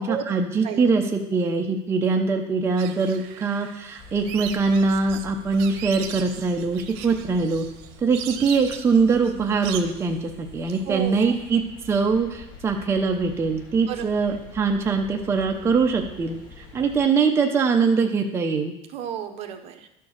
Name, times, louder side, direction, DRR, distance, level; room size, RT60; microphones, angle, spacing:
voice 1, 0.0-7.7 8.0-18.7, right 4 dB, 20° right, 2 dB, 0.7 m, -23 dB
sound 1, 2.8-11.5, right 9 dB, 80° right, 0.8 m, -39 dB
sound 2, 4.0-17.0, left 3 dB, 55° left, 2.5 m, -46 dB
voice 2, 10.8-11.4 13.9-14.1 18.9-19.9, right 9 dB, 50° right, 7 dB, 1.0 m, -32 dB
12.0 x 4.5 x 6.4 m, 0.84 s
cardioid pair, 145°, 14 cm